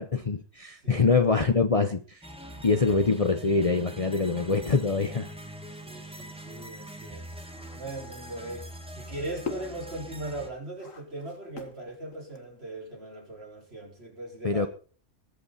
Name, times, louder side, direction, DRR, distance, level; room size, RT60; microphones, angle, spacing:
voice 1, 0.0-2.2 2.6-5.3 14.4-14.7, left 4 dB, 35° left, 0.8 m, -24 dB
voice 2, 0.7-1.5 2.6-3.0 5.7-14.7, right 2 dB, 55° right, 5.1 m, -40 dB
sound 1, 2.2-10.5, right 1 dB, 5° right, 2.0 m, -43 dB
sound 2, 6.5-12.7, left 5 dB, 80° left, 2.1 m, -44 dB
21.0 x 8.6 x 4.1 m
omnidirectional pair, 1.3 m